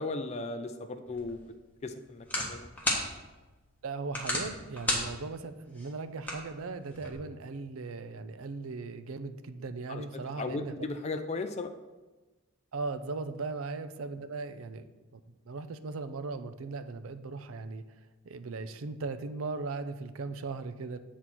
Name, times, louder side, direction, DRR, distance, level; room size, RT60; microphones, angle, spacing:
voice 1, 0.0-1.4 1.8-2.7 9.9-11.7, left 3 dB, 30° left, 6 dB, 0.4 m, -36 dB
sound 1, 1.1-7.1, left 1 dB, 10° left, 1.3 m, -36 dB
voice 2, 3.8-10.7 12.7-14.8 15.1-15.2 15.5-17.8 18.2-21.0, right 3 dB, 80° right, 10 dB, 0.5 m, -38 dB
7.9 x 4.2 x 6.0 m, 1.2 s
head